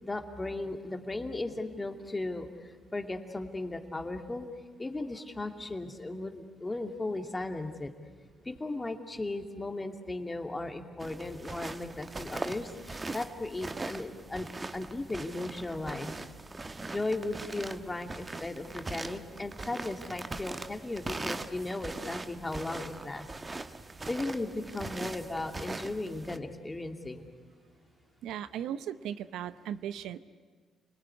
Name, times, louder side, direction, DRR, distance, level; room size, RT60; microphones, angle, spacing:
voice 1, 0.0-4.5 4.8-7.9 8.4-14.5 14.7-16.2 16.9-23.3 24.1-27.3, left 2 dB, 20° left, 6 dB, 2.5 m, -36 dB
sound 1, 11.0-26.4, right 3 dB, 25° right, 1.2 m, -41 dB
voice 2, 28.2-30.2, right 10 dB, 85° right, 13 dB, 0.8 m, -37 dB
29.5 x 20.0 x 9.8 m, 1.5 s
cardioid pair, 90°, 0 cm